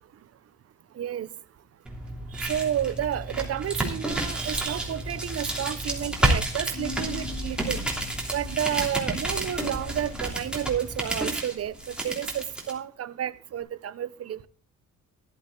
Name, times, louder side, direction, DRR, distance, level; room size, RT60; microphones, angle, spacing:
voice 1, 1.0-1.3 2.3-7.8 8.3-14.5, right 10 dB, 50° right, 0.8 m, -31 dB
sound 1, 1.8-12.7, right 1 dB, 5° right, 3.1 m, -30 dB
Keyboard (musical), 6.7-8.5, left 6 dB, 50° left, 2.0 m, -41 dB
12.0 x 11.0 x 3.8 m
cardioid pair, 90°, 30 cm